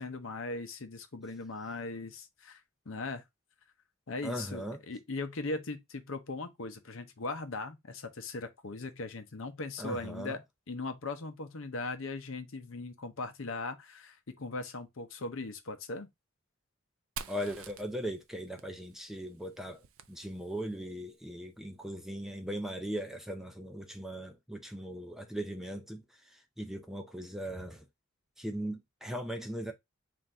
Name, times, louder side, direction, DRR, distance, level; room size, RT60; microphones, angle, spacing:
voice 1, 0.0-2.6 2.9-3.2 4.1-16.1, left 3 dB, 65° left, 0.7 m, -39 dB
voice 2, 4.2-4.8 9.8-10.4 17.3-27.9 28.4-29.7, equal, ahead, 0.4 m, -39 dB
Fire, 17.2-20.8, right 7 dB, 75° right, 0.5 m, -48 dB
3.8 x 2.6 x 4.3 m
head